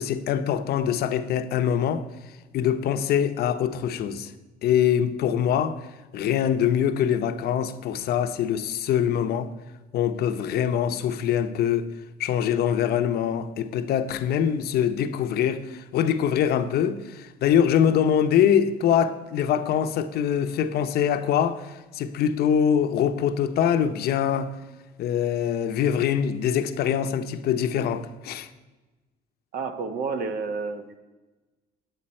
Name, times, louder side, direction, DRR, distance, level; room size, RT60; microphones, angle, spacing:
voice 1, 0.0-2.0 2.5-4.3 4.6-5.8 6.1-9.5 9.9-11.9 12.2-24.5 25.0-28.5, left 9 dB, 65° left, 0.7 m, -24 dB
voice 2, 29.5-31.0, right 4 dB, 65° right, 1.1 m, -30 dB
9.2 x 8.9 x 4.2 m
cardioid pair, 110°, 17 cm